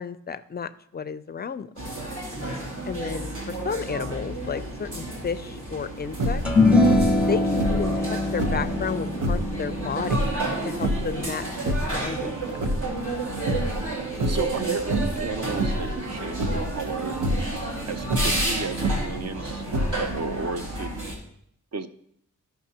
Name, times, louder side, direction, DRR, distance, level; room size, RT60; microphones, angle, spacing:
voice 1, 0.0-1.7 2.8-6.4 7.3-10.3 10.6-12.4 12.7-12.8, left 6 dB, 30° left, 13 dB, 0.4 m, -32 dB
sound 1, 1.8-21.1, right 2 dB, 70° right, 2.7 m, -31 dB
sound 2, 6.1-6.6 6.9-7.3 7.6-8.7 9.1-9.5 10.0-11.2 11.5-12.0 12.4-13.2 13.5-13.8 14.1-14.6 14.9-15.3 15.6-15.9 16.4-16.7 17.1-17.5 18.0-19.2 19.7-20.2, right 1 dB, 85° right, 1.0 m, -27 dB
sound 3, 6.4-13.0, left 2 dB, 5° right, 0.7 m, -24 dB
voice 2, 14.3-17.2 17.9-19.6 20.0-20.9 21.7-21.9, right 4 dB, 50° right, 8 dB, 0.7 m, -33 dB
14.0 x 5.8 x 2.8 m, 0.70 s
wide cardioid pair, 120°, 32 cm